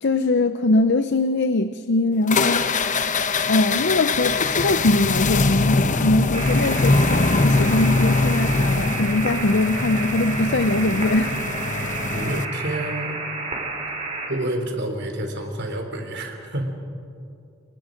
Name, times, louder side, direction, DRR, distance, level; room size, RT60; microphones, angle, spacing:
voice 1, 0.0-2.9 3.5-11.4, left 2 dB, 60° left, 10 dB, 0.7 m, -22 dB
sound 1, 2.3-12.5, left 3 dB, 40° left, 0.9 m, -22 dB
sound 2, 6.3-14.3, right 3 dB, 35° right, 4.1 m, -31 dB
voice 2, 12.1-13.2 14.3-16.7, right 1 dB, 60° right, 4 dB, 3.5 m, -28 dB
27.5 x 23.5 x 5.2 m, 2.4 s
head